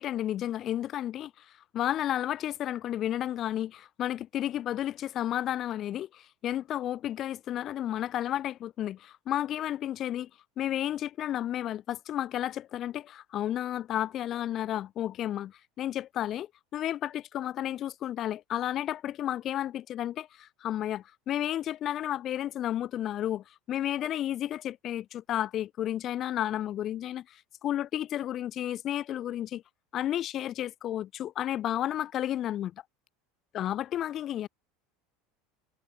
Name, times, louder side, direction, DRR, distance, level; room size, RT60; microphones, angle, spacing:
voice 1, 0.0-1.4 1.7-10.3 10.6-29.6 29.9-32.7 33.5-34.5, left 12 dB, 45° left, 0.9 m, -32 dB
hypercardioid pair, 75°, 0 cm